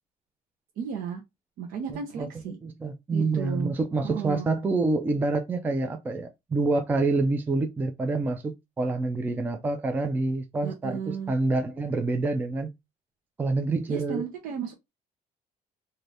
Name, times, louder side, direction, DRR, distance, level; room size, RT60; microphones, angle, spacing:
voice 1, 0.8-1.2 1.6-2.6 3.1-3.7 4.0-4.4 10.6-11.3 13.9-14.7, right 7 dB, 80° right, 0.8 m, -34 dB
voice 2, 2.6-12.7 13.4-14.2, right 3 dB, 15° right, 0.3 m, -27 dB
2.7 x 2.6 x 3.2 m
cardioid pair, 175°, 14 cm